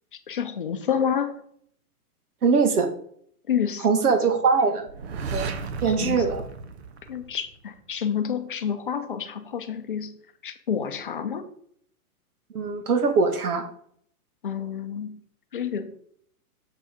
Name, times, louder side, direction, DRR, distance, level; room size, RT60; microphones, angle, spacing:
voice 1, 0.3-1.4 3.5-3.9 5.9-6.2 7.1-10.2 10.4-11.5 14.4-15.2 15.5-15.9, left 8 dB, 35° left, 8 dB, 0.6 m, -29 dB
voice 2, 2.4-2.9 3.8-4.9 5.3-5.5 5.8-6.4 12.5-13.6, right 5 dB, 75° right, 7 dB, 1.7 m, -22 dB
sound 1, 4.9-7.7, right 5 dB, 45° right, 0.7 m, -34 dB
7.1 x 5.1 x 5.0 m, 0.64 s
hypercardioid pair, 180°, 45 cm